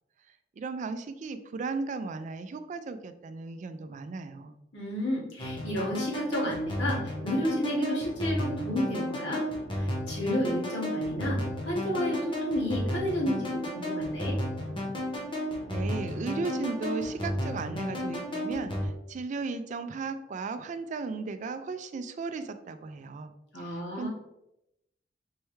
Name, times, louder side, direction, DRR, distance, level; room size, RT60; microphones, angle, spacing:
voice 1, 0.6-4.5 15.7-24.1, right 4 dB, 45° right, 10 dB, 0.3 m, -36 dB
voice 2, 4.7-9.4 9.7-14.4 23.5-24.1, equal, 85° left, -4 dB, 1.5 m, -31 dB
sound 1, 5.4-18.9, equal, 30° left, 0.8 m, -33 dB
4.5 x 3.3 x 3.1 m, 0.86 s
head